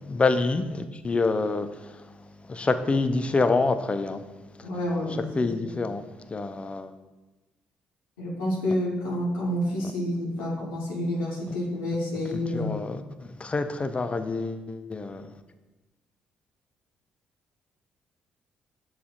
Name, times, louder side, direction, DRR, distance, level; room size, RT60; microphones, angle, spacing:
voice 1, 0.0-4.7 5.2-6.9 12.3-15.4, left 3 dB, 25° left, 0.4 m, -27 dB
voice 2, 4.6-5.2 5.6-5.7 8.2-12.8, left 1 dB, 85° left, 0.7 m, -29 dB
6.8 x 2.4 x 2.6 m
hypercardioid pair, 45°, 4 cm